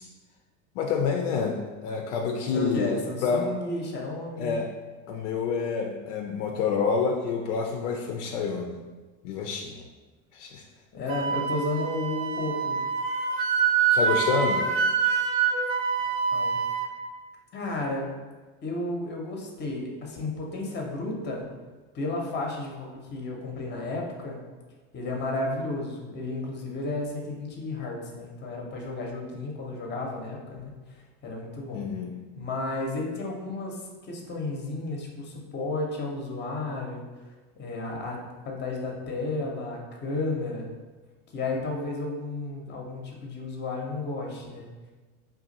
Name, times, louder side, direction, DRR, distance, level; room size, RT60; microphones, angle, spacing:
voice 1, 0.8-3.5 4.4-4.7 5.1-8.8 9.2-9.9 10.3-10.6 13.9-14.7 31.7-32.1, left 5 dB, 70° left, 2 dB, 0.5 m, -28 dB
voice 2, 2.5-4.6 10.9-12.8 16.3-16.6 17.5-18.1 18.6-21.5 21.9-24.4 24.9-31.8 32.4-37.3 37.6-40.7 41.3-44.7, left 2 dB, 30° left, 0 dB, 0.7 m, -33 dB
Wind instrument woodwind instrument, 11.1-16.9, right 6 dB, 40° right, 0.4 m, -26 dB
2.4 x 2.3 x 4.0 m, 1.3 s
hypercardioid pair, 100°, 38 cm